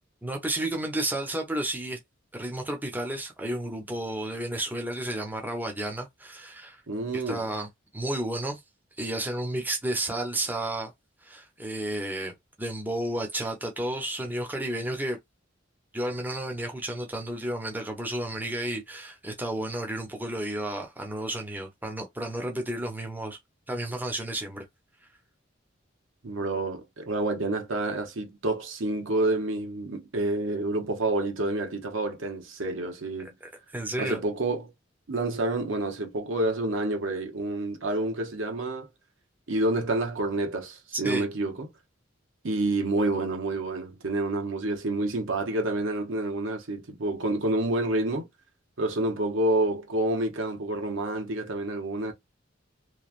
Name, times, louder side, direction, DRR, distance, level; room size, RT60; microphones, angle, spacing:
voice 1, 0.2-2.0 2.3-6.8 7.1-7.7 7.9-8.6 9.0-10.9 11.2-15.2 15.9-23.4 23.7-24.6 33.7-34.2 41.0-41.3, right 1 dB, 10° right, 0.7 m, -32 dB
voice 2, 6.9-7.4 26.2-33.3 34.0-34.7 35.1-38.9 39.5-41.7 42.4-48.3 48.8-52.1, right 2 dB, 80° right, 1.0 m, -28 dB
3.1 x 2.3 x 2.4 m
head